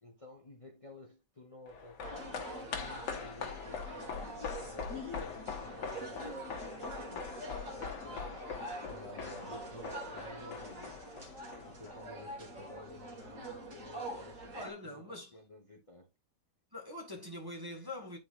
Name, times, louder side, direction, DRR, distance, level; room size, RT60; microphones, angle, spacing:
voice 1, 0.0-4.2 4.6-7.3 7.6-11.0 11.6-16.1, left 2 dB, 20° left, 1.2 m, -53 dB
sound 1, 1.7-12.2 12.5-12.6, left 6 dB, 80° left, 1.7 m, -43 dB
sound 2, 2.0-14.7, right 1 dB, 45° right, 2.3 m, -45 dB
voice 2, 14.2-15.3 16.7-18.2, left 1 dB, 15° right, 1.5 m, -44 dB
10.5 x 4.1 x 2.5 m
omnidirectional pair, 1.9 m